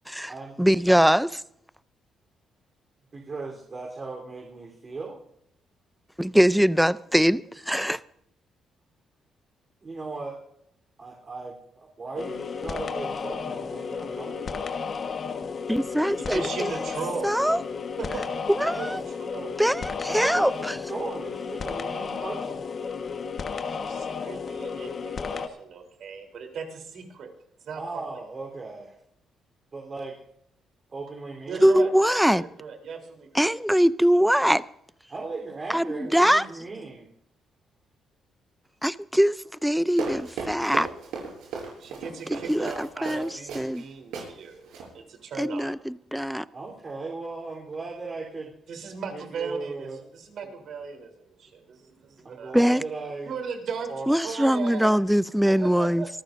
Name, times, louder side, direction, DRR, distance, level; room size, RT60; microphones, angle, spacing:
voice 1, 0.6-1.4 6.2-8.0 15.7-16.7 17.2-17.6 18.6-19.0 19.6-20.8 31.6-32.4 33.3-34.6 35.7-36.4 38.8-39.4 39.6-40.9 42.3-43.8 45.4-46.4 52.5-52.8 54.1-56.0, equal, ahead, 0.5 m, -22 dB
voice 2, 3.1-5.2 9.8-10.4 11.0-14.6 20.0-22.6 27.8-29.0 29.7-30.2 30.9-31.7 35.1-37.1 46.5-48.5 49.1-50.0 50.4-50.5 52.2-53.3 53.9-54.1, right 3 dB, 35° right, 3.7 m, -37 dB
sound 1, 12.2-25.5, left 5 dB, 45° left, 1.4 m, -33 dB
voice 3, 16.3-17.4 18.0-19.0 19.3-19.6 23.7-27.3 27.6-27.8 31.5-33.5 41.8-44.7 44.9-45.8 48.7-52.5 53.2-55.0 55.4-56.1, right 5 dB, 65° right, 3.6 m, -37 dB
Run, 39.9-43.8 44.1-44.3 44.6-44.9, right 5 dB, 90° right, 6.4 m, -36 dB
25.5 x 14.0 x 2.7 m
cardioid pair, 90°, 0 cm